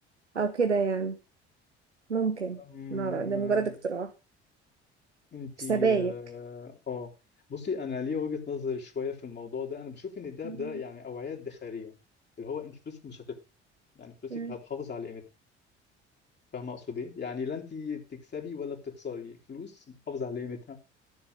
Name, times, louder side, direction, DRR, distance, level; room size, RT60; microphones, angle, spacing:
voice 1, 0.3-1.2 2.1-2.6 2.9-4.1 5.7-6.1 10.4-10.7 14.3-14.5, right 5 dB, 90° right, 8 dB, 0.7 m, -28 dB
voice 2, 2.5-3.7 5.3-7.1 7.5-11.9 12.4-13.4 13.9-15.2 16.5-20.8, left 5 dB, 30° left, 1 dB, 3.1 m, -37 dB
13.5 x 6.9 x 5.1 m, 0.32 s
figure-of-eight pair, 55°, 33 cm